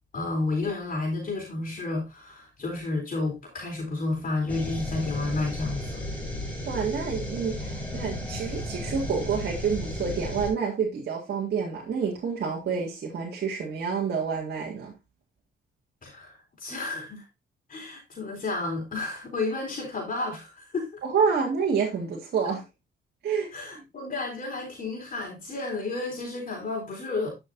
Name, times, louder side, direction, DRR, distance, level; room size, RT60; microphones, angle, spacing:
voice 1, 0.1-6.0 16.0-17.2 17.7-21.0 23.5-27.3, left 3 dB, 45° left, 3.9 m, -31 dB
sound 1, 4.5-10.5, left 1 dB, 5° left, 4.6 m, -34 dB
voice 2, 6.7-14.9 21.0-22.6 23.2-23.5, right 6 dB, 55° right, 2.0 m, -28 dB
11.0 x 6.3 x 2.6 m
cardioid pair, 90°, 20 cm